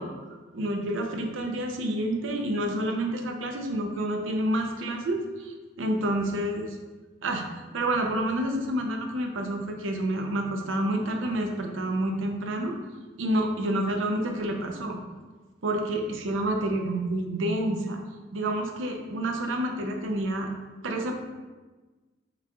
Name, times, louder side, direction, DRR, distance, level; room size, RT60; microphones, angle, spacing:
voice 1, 0.0-6.8 7.2-7.5 7.7-12.8 13.2-15.0 15.6-18.0 18.3-20.5 20.8-21.1, right 1 dB, 85° right, 3 dB, 0.6 m, -29 dB
5.8 x 2.3 x 2.9 m, 1.3 s
head